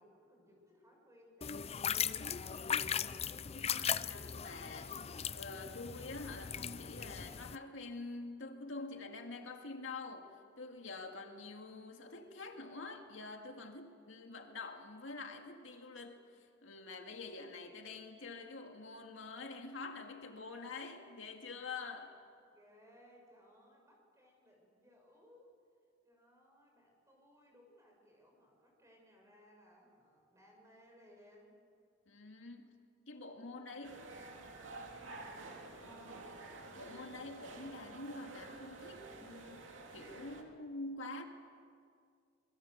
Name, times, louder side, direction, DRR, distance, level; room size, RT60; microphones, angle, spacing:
voice 1, 0.0-2.7 22.5-25.5 26.0-31.6 33.4-34.6 35.1-36.6, equal, 15° right, 0 dB, 6.9 m, -63 dB
sound 1, 1.4-7.6, left 8 dB, 35° left, 0.5 m, -38 dB
voice 2, 3.5-5.0 5.3-22.2 32.1-32.8 33.1-34.0 36.8-41.2, left 3 dB, 75° left, 4 dB, 2.1 m, -47 dB
sound 2, 33.8-40.4, right 2 dB, 75° right, 2.7 m, -50 dB
27.0 x 22.0 x 8.1 m, 2.2 s
head